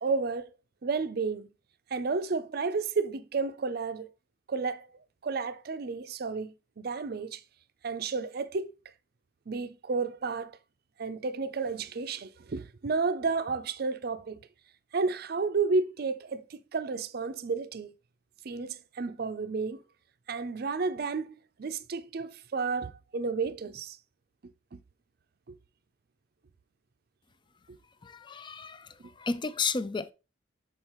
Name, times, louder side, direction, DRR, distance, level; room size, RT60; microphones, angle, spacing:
voice 1, 0.0-0.5 0.8-1.5 1.9-4.1 4.5-4.9 5.2-7.4 7.8-8.7 9.5-10.6 11.0-14.4 14.9-17.9 18.4-19.8 20.3-24.0 24.7-24.8 25.5-25.6 27.7-27.8, right 4 dB, 55° right, 0.5 m, -32 dB
voice 2, 28.0-30.1, left 4 dB, 25° left, 0.4 m, -33 dB
7.2 x 4.3 x 3.0 m
head